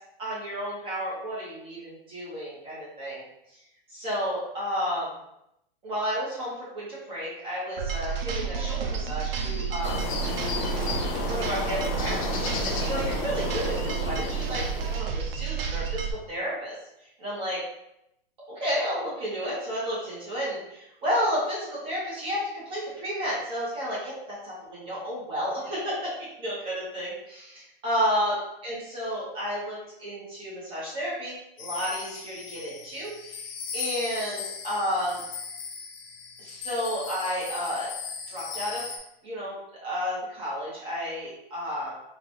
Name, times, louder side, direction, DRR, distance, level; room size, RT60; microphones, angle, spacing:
voice 1, 0.2-3.2 3.9-5.2 5.8-10.1 10.9-16.7 17.2-17.6 18.5-33.4 33.7-35.2 36.4-37.9 38.3-38.9 39.2-39.6 39.8-41.9, equal, 20° right, -7 dB, 1.2 m, -32 dB
sound 1, 7.8-16.1, right 6 dB, 75° right, 0.7 m, -30 dB
sound 2, 9.8-15.0, left 4 dB, 35° left, 0.5 m, -32 dB
sound 3, 31.6-39.0, left 6 dB, 80° left, 0.9 m, -38 dB
3.9 x 2.5 x 3.0 m, 0.82 s
hypercardioid pair, 160°, 29 cm